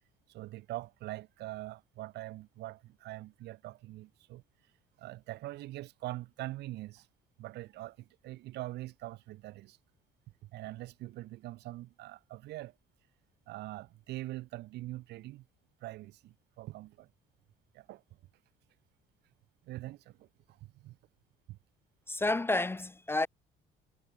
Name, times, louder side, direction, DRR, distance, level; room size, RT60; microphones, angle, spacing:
voice 1, 0.3-4.4 5.0-7.1 7.4-9.8 10.4-12.8 13.5-15.5 15.8-17.1 17.7-18.0 19.6-21.0 21.5-21.6, right 17 dB, 80° right, 4.2 m, -43 dB
voice 2, 22.1-23.3, left 2 dB, 15° left, 0.6 m, -30 dB
cardioid pair, 110°, 17 cm